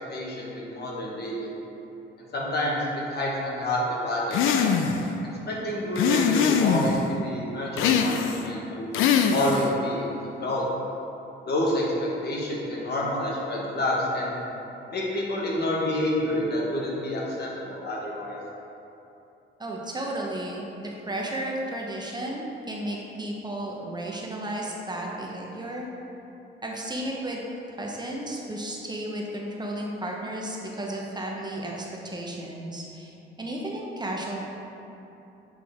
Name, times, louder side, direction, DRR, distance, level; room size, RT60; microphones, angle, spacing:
voice 1, 0.1-1.5 2.3-4.7 5.5-8.9 9.3-10.6 11.5-14.3 14.9-18.4, left 1 dB, 55° left, -4 dB, 1.4 m, -28 dB
sound 1, 4.3-5.1 5.9-7.0 7.8-8.5 8.9-9.7, left 7 dB, 85° left, 0.4 m, -22 dB
voice 2, 19.6-25.9 26.6-27.4 27.7-33.1 33.4-34.4, right 1 dB, 20° right, -2 dB, 0.8 m, -33 dB
7.8 x 4.1 x 3.6 m, 2.9 s
cardioid pair, 90°, 20 cm